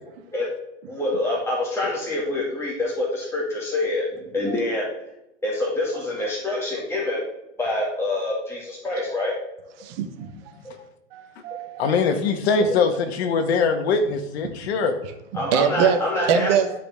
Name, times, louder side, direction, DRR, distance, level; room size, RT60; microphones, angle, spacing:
voice 1, 0.9-4.8 5.4-7.2 7.6-9.3 10.6-10.8 11.5-11.6 12.6-12.8 15.3-16.7, left 2 dB, 5° left, -6 dB, 2.2 m, -26 dB
voice 2, 9.8-10.3 11.1-11.9 15.0-16.0 16.3-16.7, right 8 dB, 50° right, 6 dB, 1.2 m, -23 dB
voice 3, 11.8-14.9, left 4 dB, 60° left, 7 dB, 1.5 m, -22 dB
12.5 x 5.0 x 3.6 m, 0.86 s
hypercardioid pair, 110°, 37 cm